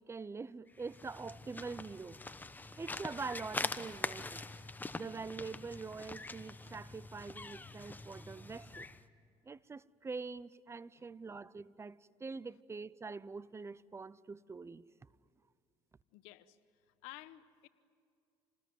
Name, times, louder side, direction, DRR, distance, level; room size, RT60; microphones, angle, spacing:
voice 1, 0.0-2.2 2.8-4.4 4.9-8.9 9.4-14.8, right 4 dB, 25° right, 0.6 m, -44 dB
sound 1, 0.8-9.0, left 3 dB, 15° left, 1.1 m, -44 dB
voice 2, 16.1-16.6 17.0-17.7, left 16 dB, 85° left, 1.0 m, -52 dB
27.5 x 20.0 x 9.3 m
supercardioid pair, 80°, 12 cm